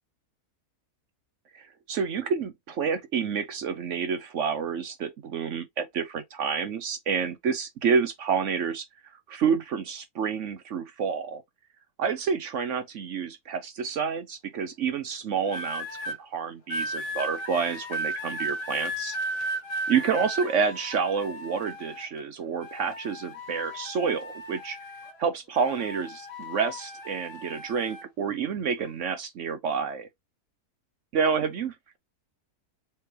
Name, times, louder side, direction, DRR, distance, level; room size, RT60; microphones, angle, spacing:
voice 1, 1.5-8.9 9.3-11.4 12.0-19.5 19.9-24.8 25.2-30.1 31.1-32.0, right 6 dB, 60° right, 0.9 m, -29 dB
sound 1, 15.5-16.2 16.7-22.2 22.6-25.2 25.5-28.1 28.8-29.1, equal, 75° left, 2.0 m, -35 dB
4.5 x 3.2 x 2.9 m
omnidirectional pair, 1.7 m